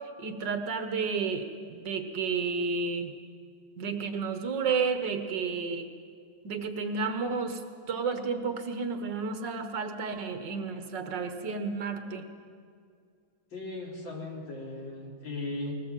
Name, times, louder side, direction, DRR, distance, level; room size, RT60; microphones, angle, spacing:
voice 1, 0.2-3.1 3.8-5.9 6.4-7.6 7.9-12.2, right 5 dB, 60° right, 7 dB, 1.9 m, -31 dB
voice 2, 13.5-15.7, left 2 dB, 65° left, -1 dB, 4.0 m, -37 dB
21.0 x 19.0 x 7.5 m, 2.2 s
omnidirectional pair, 2.2 m